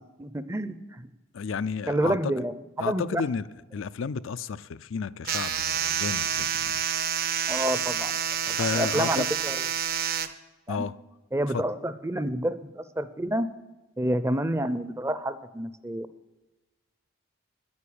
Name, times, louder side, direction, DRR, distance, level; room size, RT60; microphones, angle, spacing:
voice 1, 0.2-1.1 1.9-3.2 7.5-8.1 8.5-9.7 10.7-10.9 11.3-13.5 14.0-16.1, right 1 dB, 15° right, 0.6 m, -29 dB
voice 2, 1.3-2.2 2.8-3.5 3.7-6.8 8.5-9.3 10.7-10.9 11.5-11.6, left 5 dB, 70° left, 0.4 m, -32 dB
sound 1, 5.2-10.3, right 8 dB, 45° right, 0.7 m, -28 dB
10.5 x 9.6 x 8.7 m
head